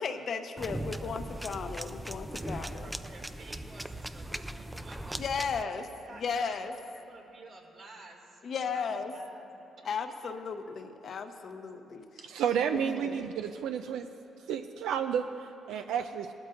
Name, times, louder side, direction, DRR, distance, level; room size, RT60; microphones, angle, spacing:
voice 1, 0.0-2.9 4.3-4.4 5.2-6.7 8.4-9.1 9.8-12.2 12.7-13.2, left 5 dB, 55° left, 6 dB, 0.8 m, -35 dB
sound 1, 0.6-5.6, right 1 dB, 10° right, 0.4 m, -39 dB
voice 2, 2.8-8.8 9.1-9.5 9.8-9.9, right 3 dB, 65° right, -1 dB, 2.2 m, -52 dB
voice 3, 12.2-14.1 14.5-16.3, right 8 dB, 85° right, 7 dB, 0.4 m, -31 dB
18.5 x 12.5 x 2.5 m, 2.9 s
cardioid pair, 90°, 0 cm